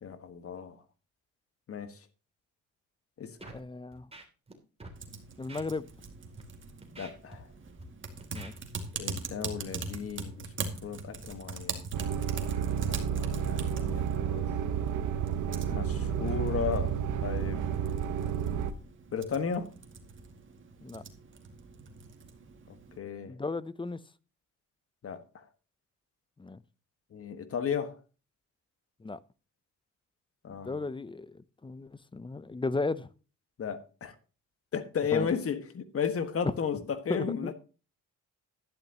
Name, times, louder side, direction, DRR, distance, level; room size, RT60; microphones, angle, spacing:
voice 1, 0.0-0.8 1.7-2.0 3.2-3.5 7.0-7.5 9.0-10.5 10.8-11.8 12.9-14.5 15.7-16.9 17.2-18.0 19.1-19.7 22.7-23.3 25.0-25.4 27.1-28.0 30.4-30.9 33.6-34.1 34.7-37.5, left 6 dB, 50° left, 1.6 m, -34 dB
Scratching (performance technique), 3.4-3.6 3.9-4.5 4.8-5.0 5.5-5.6 6.2-6.4 6.8-7.8 8.2-8.5, right 2 dB, 20° right, 2.9 m, -47 dB
voice 2, 3.5-4.1 5.4-5.8 8.3-8.5 20.8-21.0 23.2-24.0 26.4-26.6 29.0-29.2 30.6-33.1 35.1-35.3 37.1-37.5, left 3 dB, 15° left, 0.6 m, -35 dB
Typing, 5.0-23.0, right 4 dB, 40° right, 2.1 m, -43 dB
sound 1, 11.9-18.7, right 8 dB, 80° right, 1.1 m, -31 dB
12.0 x 10.5 x 3.0 m
cardioid pair, 90°, 30 cm